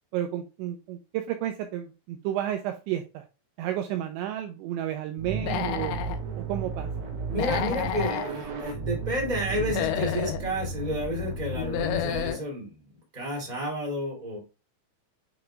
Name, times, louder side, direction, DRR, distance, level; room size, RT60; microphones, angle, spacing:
voice 1, 0.1-3.3 3.6-6.0 6.4-6.9, right 11 dB, 90° right, 6 dB, 2.6 m, -31 dB
sound 1, 5.2-12.3, right 4 dB, 70° right, 2.2 m, -34 dB
Human voice / Animal, 5.3-6.2 7.3-8.3 9.6-10.4 11.5-12.4, left 10 dB, 85° left, 2.6 m, -30 dB
voice 2, 7.3-12.8 13.1-14.4, equal, 15° right, -2 dB, 1.9 m, -31 dB
9.1 x 4.9 x 2.3 m, 0.31 s
omnidirectional pair, 5.9 m